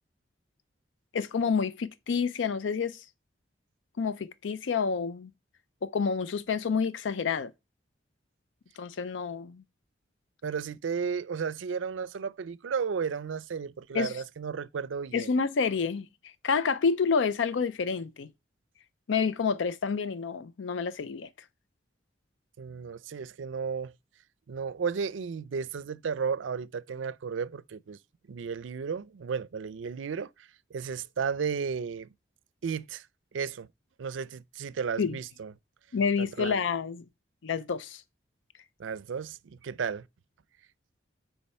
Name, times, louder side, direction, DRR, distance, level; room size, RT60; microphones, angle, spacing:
voice 1, 1.1-3.0 4.0-5.3 5.8-7.5 8.8-9.6 13.9-14.1 15.1-18.3 19.1-21.3 35.0-35.1 35.9-37.0 37.4-38.0, left 5 dB, 85° left, 0.5 m, -29 dB
voice 2, 10.4-15.3 22.6-23.9 24.5-28.0 28.3-32.1 32.6-33.1 33.3-33.7 34.0-35.5 36.2-36.6 38.8-40.1, right 6 dB, 90° right, 0.4 m, -34 dB
8.8 x 4.6 x 4.2 m
head